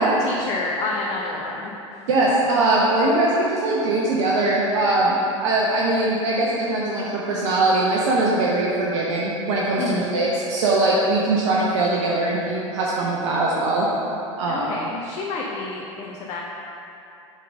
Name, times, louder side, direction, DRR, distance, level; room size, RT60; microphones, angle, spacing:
voice 1, 0.2-1.7 9.8-10.1 14.5-16.4, left 3 dB, 40° left, -2 dB, 0.8 m, -29 dB
voice 2, 2.1-13.9 14.4-14.7, right 2 dB, 65° right, -5 dB, 1.0 m, -21 dB
7.4 x 3.8 x 5.3 m, 2.8 s
hypercardioid pair, 85°, 17 cm